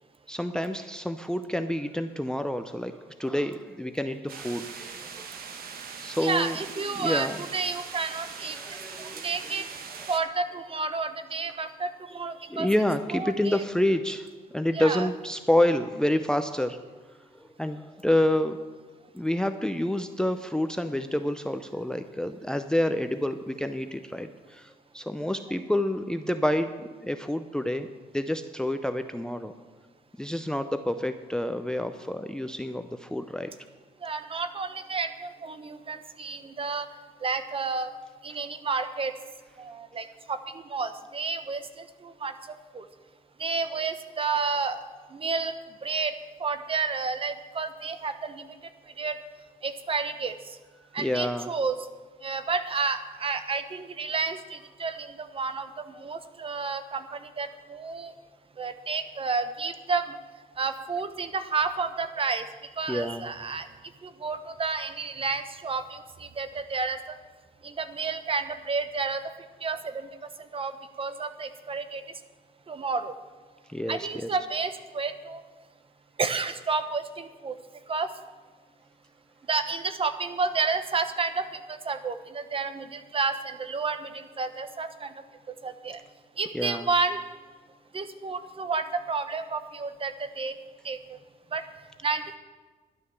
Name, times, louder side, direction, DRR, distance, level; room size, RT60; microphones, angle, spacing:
voice 1, 0.3-5.3 6.0-6.6 6.9-7.4 8.5-9.3 12.5-14.3 14.5-16.8 17.6-18.6 19.1-27.9 28.1-29.5 30.2-33.5 51.0-51.5 62.9-63.3 73.7-74.3 86.5-86.9, left 1 dB, 5° left, 9 dB, 0.6 m, -28 dB
sound 1, 4.3-10.2, right 6 dB, 70° right, 1.3 m, -41 dB
voice 2, 6.2-8.6 9.0-9.6 10.1-12.7 13.1-13.6 14.7-15.1 34.0-36.9 37.2-37.9 38.2-39.1 39.6-40.4 40.7-41.6 42.0-42.3 42.7-42.8 43.4-44.8 45.1-45.5 45.8-46.1 46.4-48.5 49.0-49.1 49.6-50.3 50.9-51.8 52.2-55.7 56.0-57.0 57.4-58.1 58.6-60.1 60.6-62.4 62.8-63.6 64.0-66.0 66.4-67.0 67.6-69.2 69.6-69.8 70.5-70.7 71.0-72.0 72.7-73.1 73.9-75.4 76.2-77.5 77.9-78.1 79.5-85.1 85.6-86.0 86.4-87.2 87.9-90.5 90.8-91.0 91.5-91.6 92.0-92.4, right 4 dB, 35° right, 10 dB, 1.0 m, -30 dB
11.5 x 9.7 x 7.0 m, 1.3 s
cardioid pair, 95°, 16 cm